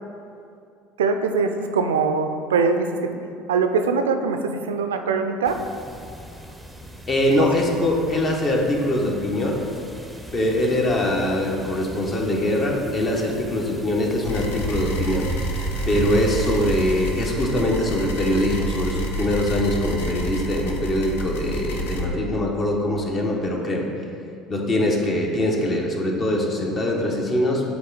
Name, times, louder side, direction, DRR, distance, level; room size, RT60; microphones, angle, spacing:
voice 1, 1.0-3.1 3.5-5.6 7.4-7.5, right 5 dB, 85° right, 7 dB, 0.3 m, -22 dB
sound 1, 5.4-17.2, right 1 dB, 5° left, 0.7 m, -37 dB
voice 2, 7.1-9.6 10.3-15.3 15.8-23.9 24.5-27.6, left 1 dB, 40° left, 0 dB, 1.1 m, -23 dB
sound 2, 14.2-22.0, right 1 dB, 75° left, 0.6 m, -29 dB
7.7 x 3.5 x 4.0 m, 2.5 s
hypercardioid pair, 70°, 0 cm